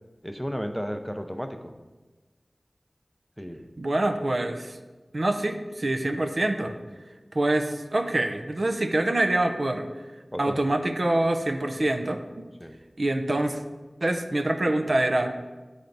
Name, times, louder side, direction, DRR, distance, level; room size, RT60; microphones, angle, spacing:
voice 1, 0.2-1.7 3.4-3.7 10.3-10.6 12.6-12.8, equal, ahead, 7 dB, 0.5 m, -33 dB
voice 2, 3.8-4.8 5.1-6.7 7.3-9.9 10.4-12.4 13.0-13.6 14.0-15.3, right 1 dB, 65° right, 6 dB, 0.4 m, -25 dB
8.5 x 3.4 x 3.9 m, 1.2 s
wide cardioid pair, 45°, 0 cm